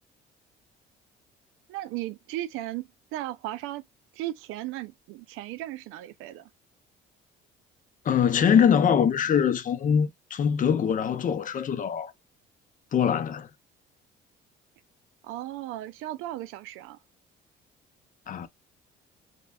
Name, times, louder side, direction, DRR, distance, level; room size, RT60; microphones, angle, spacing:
voice 1, 1.7-3.8 4.1-6.5 15.2-17.0, right 15 dB, 85° right, 0.5 m, -36 dB
voice 2, 8.0-12.1 12.9-13.5 18.3-18.5, left 8 dB, 40° left, 0.5 m, -23 dB
3.2 x 2.2 x 2.3 m
cardioid pair, 100°, 21 cm